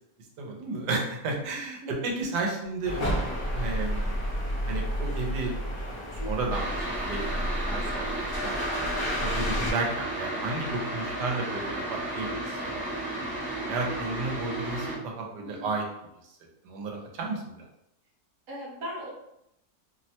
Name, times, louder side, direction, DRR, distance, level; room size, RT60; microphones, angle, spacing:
voice 1, 0.4-3.0 3.5-4.1 4.7-5.5 6.2-8.5 9.2-12.8 13.2-15.8 16.6-17.5, right 3 dB, 85° right, 0 dB, 1.2 m, -33 dB
sound 1, 2.8-9.7, equal, 50° left, 0.6 m, -31 dB
voice 2, 6.2-6.5 8.9-9.2 15.4-15.7 18.5-19.1, equal, 60° right, -3 dB, 1.1 m, -40 dB
sound 2, 6.5-14.9, right 1 dB, 10° right, 0.5 m, -33 dB
3.0 x 2.1 x 2.7 m, 0.82 s
omnidirectional pair, 1.8 m